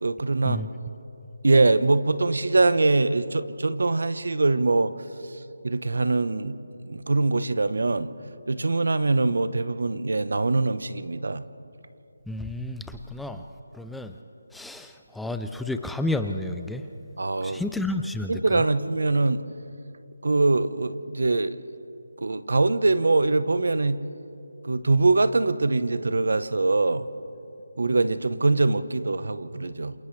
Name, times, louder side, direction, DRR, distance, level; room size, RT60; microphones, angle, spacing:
voice 1, 0.0-0.6 1.4-4.9 5.6-6.6 6.9-8.1 8.5-11.4 17.2-17.6 18.3-19.4 20.2-21.6 22.2-24.0 24.6-27.0 27.8-29.9, right 3 dB, 70° right, 13 dB, 1.0 m, -23 dB
voice 2, 12.3-13.4 13.7-14.1 14.5-16.8 17.4-18.6, left 2 dB, ahead, 7 dB, 0.4 m, -31 dB
28.5 x 27.5 x 3.3 m, 2.8 s
figure-of-eight pair, 165°, 0 cm